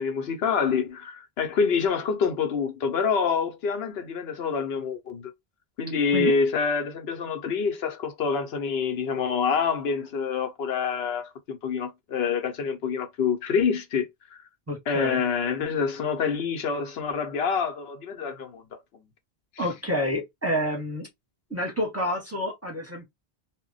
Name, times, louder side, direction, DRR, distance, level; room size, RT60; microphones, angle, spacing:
voice 1, 0.0-5.3 5.8-14.4 14.9-18.6 18.9-19.0 19.6-19.7, left 6 dB, 80° left, 0.9 m, -27 dB
voice 2, 14.7-15.2 19.6-21.1 21.5-23.0, equal, 15° right, 0.7 m, -28 dB
2.1 x 2.1 x 3.7 m
omnidirectional pair, 1.0 m